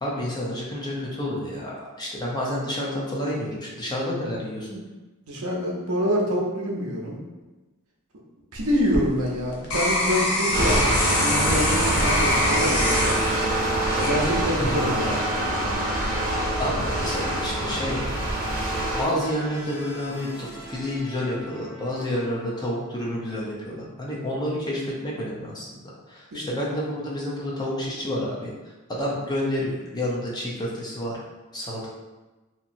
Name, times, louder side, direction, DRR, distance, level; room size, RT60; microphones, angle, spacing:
voice 1, 0.0-4.8 14.6-15.0 15.9-16.3 16.6-18.0 18.9-28.5 28.9-31.2 31.5-31.9, left 1 dB, 20° left, -4 dB, 0.5 m, -29 dB
voice 2, 5.3-7.2 8.5-13.2 14.0-15.2 26.3-26.4, equal, 75° right, -2 dB, 0.7 m, -26 dB
sound 1, 8.5-14.8 15.3-15.7, left 2 dB, 85° left, 0.6 m, -26 dB
sound 2, 10.5-24.4, equal, 70° left, 1.5 m, -41 dB
sound 3, 10.5-19.0, right 1 dB, 40° right, 0.6 m, -25 dB
2.9 x 2.6 x 2.5 m, 1.2 s
head